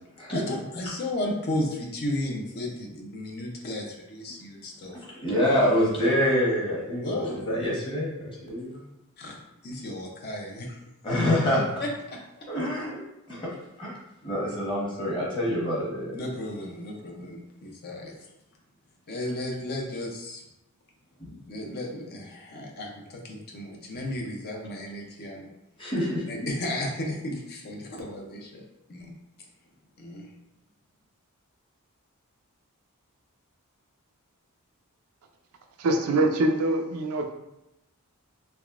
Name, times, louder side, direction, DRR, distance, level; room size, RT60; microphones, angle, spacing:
voice 1, 0.3-5.0 7.0-7.5 9.2-9.4 9.6-10.9 11.5-12.5 16.1-18.1 19.1-20.4 21.5-25.5 26.3-29.1 30.0-30.3, left 1 dB, 45° left, 0 dB, 0.5 m, -34 dB
voice 2, 5.2-8.8 11.0-11.6 12.5-13.0 13.3-13.5 13.8-13.9 14.2-16.1 21.2-21.3 25.8-26.2, equal, 20° left, -5 dB, 1.0 m, -26 dB
voice 3, 35.8-37.3, right 2 dB, 75° right, 4 dB, 0.4 m, -24 dB
3.4 x 3.1 x 2.4 m, 0.88 s
head